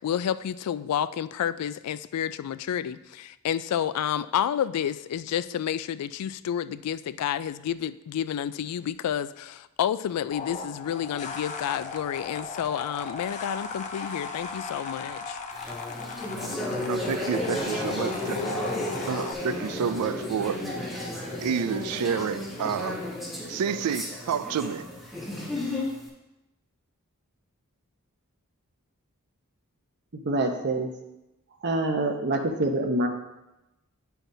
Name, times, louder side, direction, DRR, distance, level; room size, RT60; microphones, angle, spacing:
voice 1, 0.0-15.4, left 9 dB, 90° left, 0.3 m, -30 dB
sound 1, 10.3-19.3, left 4 dB, 30° left, 0.6 m, -37 dB
sound 2, 15.5-26.0, left 1 dB, ahead, 2.2 m, -33 dB
voice 2, 16.8-18.4 19.1-20.6 21.4-23.0 23.5-24.9, right 7 dB, 85° right, 0.4 m, -29 dB
voice 3, 30.2-30.9 31.6-33.1, right 2 dB, 50° right, 0.8 m, -25 dB
10.0 x 5.7 x 2.7 m
head